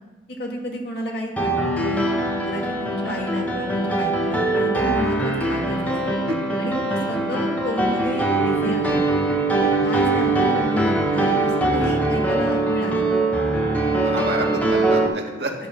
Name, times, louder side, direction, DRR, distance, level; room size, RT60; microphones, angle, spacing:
voice 1, 0.3-2.0 2.4-6.2 6.6-9.0 9.6-13.0, equal, 60° left, 0 dB, 2.1 m, -30 dB
Piano, 1.4-15.1, right 2 dB, 10° left, 1.0 m, -22 dB
voice 2, 14.0-15.5, right 2 dB, 60° right, 0 dB, 1.8 m, -29 dB
11.5 x 6.9 x 6.4 m, 1.2 s
head